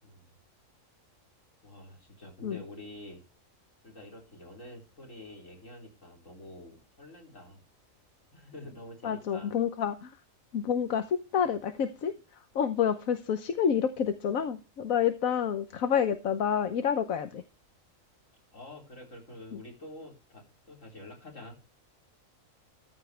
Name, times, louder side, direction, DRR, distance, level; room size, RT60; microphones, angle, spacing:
voice 1, 1.6-3.2 3.8-7.6 8.3-9.5 18.5-21.6, left 1 dB, 65° left, 0 dB, 4.6 m, -47 dB
voice 2, 9.0-10.2 10.5-17.4 19.5-19.6, left 8 dB, 85° left, 9 dB, 1.4 m, -29 dB
14.5 x 10.5 x 3.4 m, 0.32 s
omnidirectional pair, 1.4 m